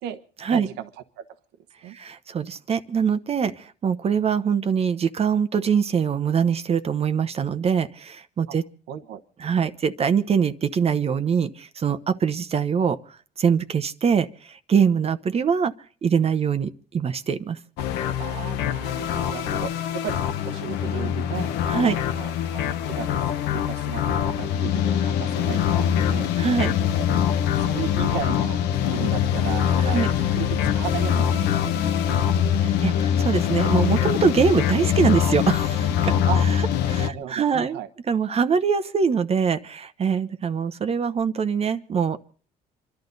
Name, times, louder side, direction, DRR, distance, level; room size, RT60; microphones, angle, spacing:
voice 1, 0.5-0.9 1.2-1.3 1.8-2.0 8.5-8.6 8.9-9.2 18.2-20.2 20.4-21.5 21.8-22.6 22.9-26.3 27.6-32.2 36.2-36.4 36.9-37.9, right 11 dB, 85° right, 7 dB, 1.1 m, -35 dB
voice 2, 1.8-8.6 9.4-15.7 16.0-17.6 21.7-21.9 26.4-26.7 29.8-30.1 32.6-36.1 36.4-36.6 36.9-37.8 38.1-42.2, right 6 dB, 35° right, 10 dB, 0.9 m, -23 dB
sound 1, 17.8-37.1, left 9 dB, 90° left, 1.1 m, -23 dB
28.0 x 12.0 x 4.0 m, 0.42 s
cardioid pair, 110°, 17 cm